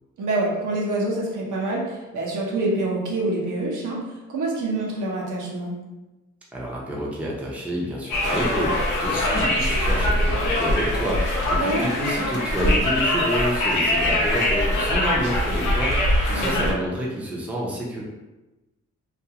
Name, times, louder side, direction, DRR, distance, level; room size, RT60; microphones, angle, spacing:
voice 1, 0.2-4.0 4.3-5.8 11.6-11.9 16.3-16.7, right 2 dB, 80° right, -3 dB, 0.7 m, -26 dB
voice 2, 6.5-18.0, equal, 5° right, -4 dB, 0.5 m, -29 dB
Conversation, 8.1-16.7, left 1 dB, 85° left, 0.7 m, -22 dB
2.4 x 2.3 x 2.8 m, 1.1 s
wide cardioid pair, 150°, 30 cm